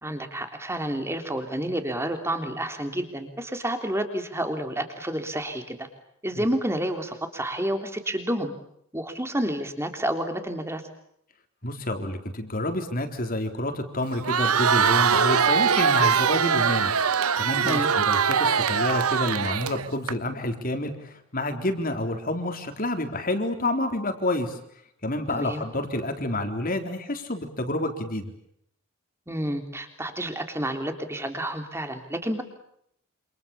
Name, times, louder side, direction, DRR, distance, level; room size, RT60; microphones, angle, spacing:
voice 1, 0.0-5.9 6.2-8.5 8.9-10.8 17.6-17.9 25.3-25.6 29.3-32.4, right 1 dB, 10° right, 6 dB, 3.5 m, -30 dB
voice 2, 11.6-16.9 17.4-24.6 25.0-28.2, left 1 dB, 40° left, 6 dB, 3.8 m, -28 dB
Crowd, 14.1-20.1, right 6 dB, 80° right, 1.0 m, -22 dB
28.0 x 27.5 x 7.2 m, 0.73 s
head